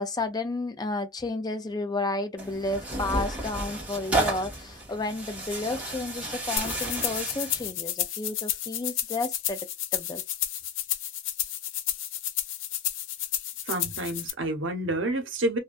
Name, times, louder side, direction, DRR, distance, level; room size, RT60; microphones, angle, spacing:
voice 1, 0.0-9.6 9.9-10.2, left 2 dB, 20° left, 0.4 m, -32 dB
Tearing, 2.4-7.7, right 2 dB, 5° right, 1.1 m, -32 dB
sound 1, 6.6-14.3, left 12 dB, 90° left, 0.4 m, -31 dB
voice 2, 13.7-15.6, right 1 dB, 85° right, 0.7 m, -29 dB
2.5 x 2.2 x 2.2 m
head